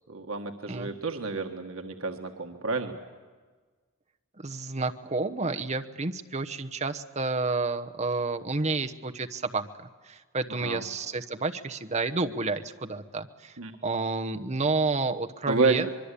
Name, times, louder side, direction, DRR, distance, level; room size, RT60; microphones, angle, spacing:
voice 1, 0.1-3.0 10.6-10.8 13.6-13.7 15.5-15.9, right 3 dB, 80° right, 4 dB, 1.7 m, -29 dB
voice 2, 4.4-15.9, right 3 dB, 35° right, 6 dB, 1.1 m, -30 dB
24.5 x 22.5 x 8.4 m, 1.4 s
head